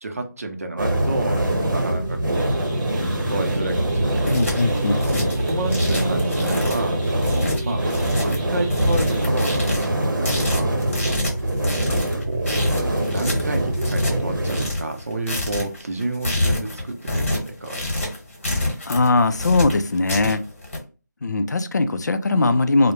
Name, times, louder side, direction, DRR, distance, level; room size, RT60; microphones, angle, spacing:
voice 1, 0.0-2.5 3.3-4.5 5.0-7.8 8.2-9.6 10.0-10.8 11.1-11.4 11.8-12.5 13.1-18.1, right 2 dB, 50° right, 5 dB, 0.5 m, -30 dB
sound 1, 0.8-14.7, right 1 dB, 85° right, 0.7 m, -23 dB
sound 2, 2.3-9.3, right 3 dB, 5° right, 0.6 m, -43 dB
sound 3, 4.0-20.8, left 1 dB, 40° left, 1.1 m, -27 dB
voice 2, 4.2-5.2 18.9-20.4 21.2-22.9, left 3 dB, 60° left, 10 dB, 0.4 m, -20 dB
2.2 x 2.0 x 2.9 m, 0.34 s
figure-of-eight pair, 170°, 10 cm